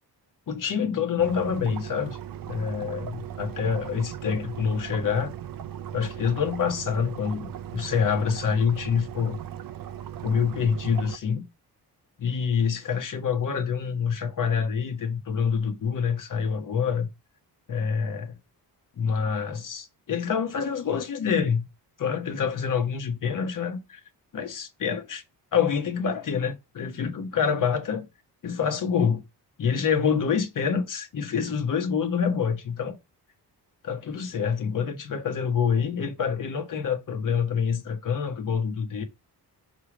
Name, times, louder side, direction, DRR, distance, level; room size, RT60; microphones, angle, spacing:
voice 1, 0.5-2.2 2.5-5.3 5.9-9.4 10.2-11.4 12.2-17.1 17.7-18.4 19.0-21.7 22.0-24.0 24.3-25.2 25.5-28.1 28.4-29.2 29.6-33.0 33.8-39.0, left 6 dB, 55° left, 1.3 m, -26 dB
sound 1, 1.2-11.2, right 10 dB, 60° right, 0.7 m, -38 dB
6.5 x 3.3 x 5.0 m
wide cardioid pair, 145°, 39 cm